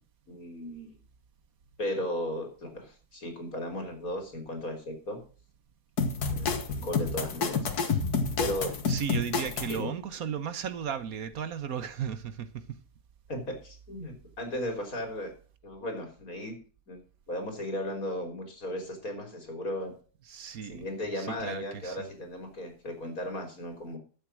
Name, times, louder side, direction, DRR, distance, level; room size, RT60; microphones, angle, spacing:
voice 1, 0.3-1.0 1.8-5.2 6.1-7.7 8.4-8.7 9.7-9.9 13.3-15.3 15.6-16.6 16.9-17.0 17.3-19.9 20.7-24.0, left 1 dB, 65° left, 4.1 m, -36 dB
sound 1, 6.0-9.8, left 4 dB, 85° left, 2.0 m, -29 dB
voice 2, 8.9-12.8 20.3-20.9 21.2-22.1, right 7 dB, 70° right, 1.5 m, -35 dB
12.0 x 7.5 x 6.2 m
omnidirectional pair, 1.6 m